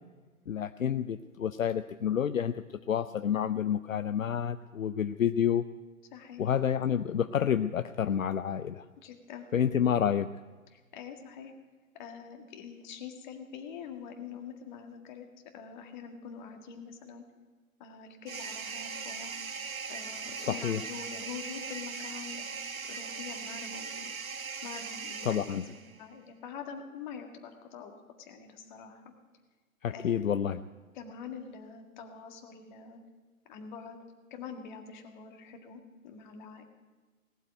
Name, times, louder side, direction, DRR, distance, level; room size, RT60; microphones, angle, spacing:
voice 1, 0.5-5.6 6.4-8.9 9.5-10.3 20.4-20.9 25.2-25.6 29.8-30.6, left 8 dB, 65° left, 12 dB, 0.6 m, -29 dB
voice 2, 6.1-6.5 9.0-9.8 10.7-11.5 11.9-15.3 15.5-17.2 17.8-19.3 19.9-22.5 22.9-24.1 24.6-29.0 29.9-30.3 31.0-33.0 33.5-34.0 34.3-36.6, left 6 dB, 35° left, 4 dB, 2.0 m, -45 dB
sound 1, 18.3-26.0, right 5 dB, 70° right, 1.1 m, -40 dB
18.5 x 8.1 x 9.3 m, 1.4 s
figure-of-eight pair, 125°, 43 cm